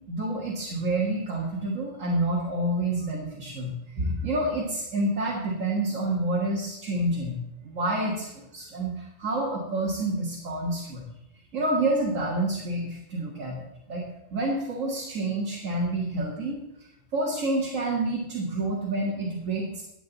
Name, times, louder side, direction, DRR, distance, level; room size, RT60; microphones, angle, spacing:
voice 1, 0.0-11.0 11.5-14.0 14.3-16.6 17.1-19.8, right 2 dB, 75° right, -3 dB, 2.2 m, -28 dB
15.0 x 8.5 x 4.1 m, 0.86 s
omnidirectional pair, 1.3 m